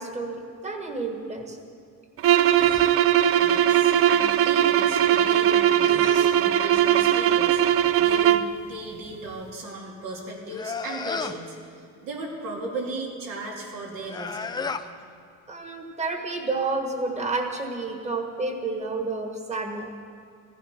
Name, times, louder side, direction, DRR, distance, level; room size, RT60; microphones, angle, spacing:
voice 1, 0.0-1.6 15.5-19.9, right 3 dB, 20° right, 4 dB, 1.6 m, -30 dB
sound 1, 2.2-8.5, right 10 dB, 45° right, 0.4 m, -20 dB
sound 2, 2.4-2.9 5.5-6.5 10.5-11.5 14.0-14.9, left 4 dB, 15° left, 0.4 m, -34 dB
voice 2, 3.4-14.6, right 2 dB, 80° right, -1 dB, 3.1 m, -36 dB
15.0 x 15.0 x 6.0 m, 2.4 s
cardioid pair, 155°, 32 cm